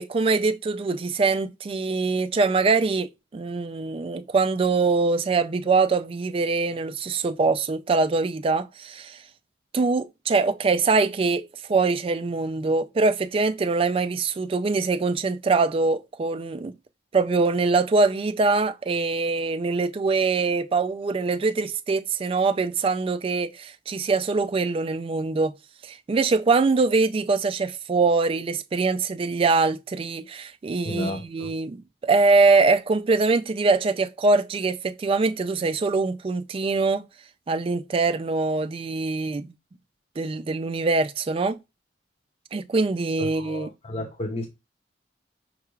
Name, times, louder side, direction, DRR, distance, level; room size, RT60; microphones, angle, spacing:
voice 1, 0.0-9.2 9.7-16.7 17.1-25.5 25.8-37.1 37.5-39.5 40.2-41.6 42.5-43.7, right 3 dB, 30° right, 0.3 m, -23 dB
voice 2, 30.9-31.5 43.2-44.5, left 1 dB, 35° left, 0.6 m, -32 dB
5.6 x 3.2 x 2.3 m
head